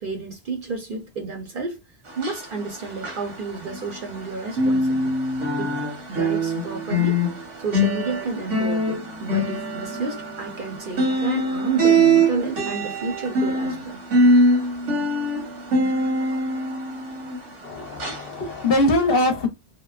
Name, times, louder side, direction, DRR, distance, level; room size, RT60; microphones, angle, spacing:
voice 1, 0.0-1.8 2.2-5.2 5.6-5.8 6.1-14.0, right 4 dB, 55° right, 0.7 m, -31 dB
sound 1, 2.1-4.2 4.5-17.6 18.0-18.2 18.7-18.8, right 1 dB, 85° right, 1.4 m, -23 dB
voice 2, 17.6-19.5, left 1 dB, 60° left, 0.8 m, -22 dB
2.8 x 2.1 x 2.3 m
omnidirectional pair, 1.2 m